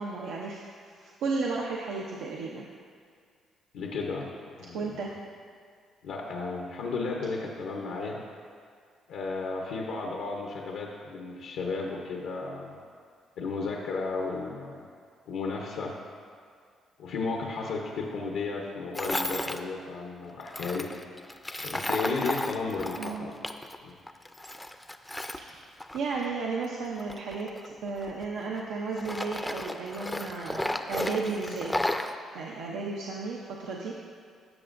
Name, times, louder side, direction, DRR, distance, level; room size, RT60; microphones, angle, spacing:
voice 1, 0.0-2.7 4.7-5.1 23.0-23.3 25.3-25.6 25.9-31.8 32.3-33.9, right 4 dB, 90° right, -3 dB, 0.7 m, -34 dB
voice 2, 3.7-4.3 4.6-5.0 6.0-8.2 9.1-12.8 13.4-14.8 15.3-16.0 17.0-20.9 21.6-23.4 23.8-23.9, left 4 dB, 85° left, 0 dB, 0.8 m, -33 dB
Tools, 18.9-19.6 20.5-23.8 24.1-26.3 27.0-28.6 29.0-32.1, left 1 dB, 10° left, 0.4 m, -33 dB
12.5 x 6.9 x 2.6 m, 2.2 s
cardioid pair, 90°, 0 cm